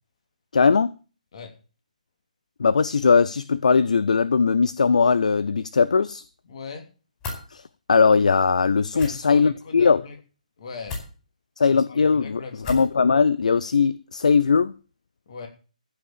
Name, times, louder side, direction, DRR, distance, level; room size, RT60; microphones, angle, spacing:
voice 1, 0.5-0.9 2.6-6.2 7.5-7.6 7.9-10.0 11.6-14.7, left 5 dB, 60° left, 0.5 m, -19 dB
voice 2, 6.5-6.9 8.9-10.2 10.6-11.0 11.6-12.7 15.3-15.5, left 4 dB, 45° left, 2.9 m, -39 dB
sound 1, 7.2-7.4 8.9-9.1 10.8-11.1 12.6-12.9, left 3 dB, 20° left, 4.8 m, -33 dB
15.0 x 5.8 x 7.3 m
figure-of-eight pair, 140°, 4 cm